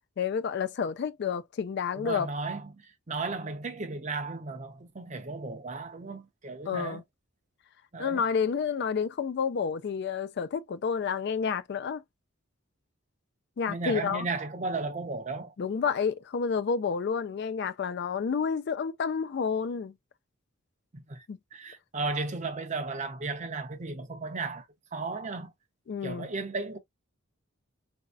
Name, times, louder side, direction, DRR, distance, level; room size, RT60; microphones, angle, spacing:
voice 1, 0.2-2.3 6.7-7.0 8.0-12.0 13.6-14.3 15.6-19.9 21.3-21.4 25.9-26.3, left 6 dB, 50° left, 0.3 m, -30 dB
voice 2, 1.9-7.0 7.9-8.2 13.7-15.5 20.9-21.3 21.5-24.7 24.9-25.5 26.0-26.8, right 3 dB, 35° right, 0.6 m, -35 dB
3.9 x 2.6 x 2.2 m
head